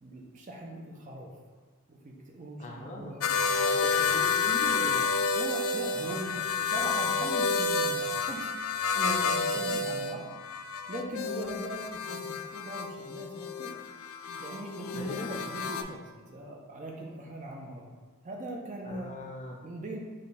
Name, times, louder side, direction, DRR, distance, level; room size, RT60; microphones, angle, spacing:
voice 1, 0.0-1.3 1.9-4.2 5.4-8.5 8.9-10.3 10.9-13.7 14.4-17.9 18.2-19.1 19.6-20.0, right 1 dB, 35° right, 0 dB, 0.5 m, -40 dB
voice 2, 2.6-3.1 3.8-5.1 9.7-9.8 14.9-15.3 18.8-19.5, left 1 dB, 30° left, -1 dB, 0.6 m, -40 dB
sound 1, 3.2-15.8, left 4 dB, 70° left, 0.3 m, -30 dB
5.2 x 2.3 x 4.1 m, 1.4 s
head